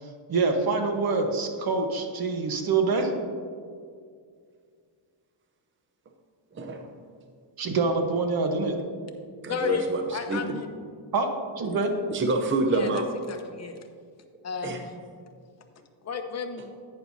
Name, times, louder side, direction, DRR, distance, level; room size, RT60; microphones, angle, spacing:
voice 1, 0.0-3.1 7.6-8.7 11.1-11.3 11.6-11.9, right 4 dB, 45° right, 4 dB, 1.2 m, -25 dB
voice 2, 6.5-6.9 9.4-10.6 11.6-11.8 12.1-13.1 14.6-14.8, right 3 dB, 25° right, 4 dB, 0.7 m, -28 dB
voice 3, 9.5-9.8 10.1-10.7 12.7-12.9 13.3-13.8 14.4-15.0 16.0-16.7, left 6 dB, 35° left, 5 dB, 0.9 m, -32 dB
11.0 x 9.1 x 2.7 m, 2.1 s
cardioid pair, 120°, 49 cm